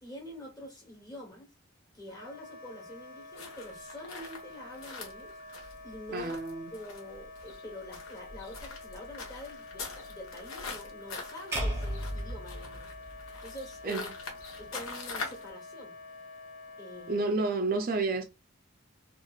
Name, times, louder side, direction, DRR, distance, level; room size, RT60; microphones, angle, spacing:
voice 1, 0.0-1.5 1.9-5.4 5.8-6.4 6.7-12.9 13.4-14.1 14.6-15.9 16.8-17.3, left 1 dB, 20° left, 1.1 m, -46 dB
Wind instrument woodwind instrument, 2.1-17.4, left 3 dB, 40° left, 0.5 m, -48 dB
sound 1, 3.3-15.5, left 4 dB, 90° left, 0.9 m, -44 dB
voice 2, 6.1-6.7 13.8-14.0 17.1-18.2, right 3 dB, 45° right, 0.4 m, -30 dB
sound 2, 11.5-13.8, equal, 15° right, 0.7 m, -35 dB
3.0 x 2.5 x 2.3 m
head